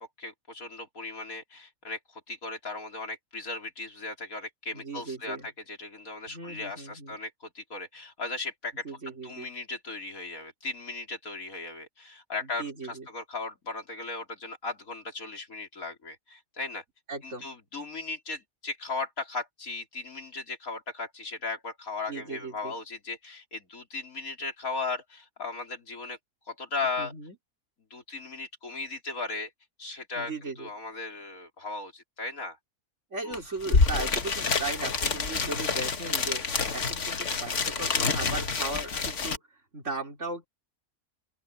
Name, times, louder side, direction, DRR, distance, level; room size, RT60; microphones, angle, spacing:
voice 1, 0.0-2.0 2.3-8.9 9.2-16.8 17.2-26.2 26.5-27.1 27.9-29.5 29.8-30.3 30.6-32.6 33.2-33.4 35.7-35.9, left 3 dB, 75° left, 4.0 m, -37 dB
voice 2, 4.7-5.5 6.3-7.2 8.8-9.5 12.4-13.1 17.1-17.5 22.1-22.7 27.0-27.4 30.1-30.7 33.1-36.4 36.7-39.4 39.7-40.5, right 3 dB, 55° right, 4.0 m, -37 dB
sound 1, 33.3-33.4 33.6-39.4, left 4 dB, 55° left, 1.8 m, -27 dB
open air
omnidirectional pair, 1.5 m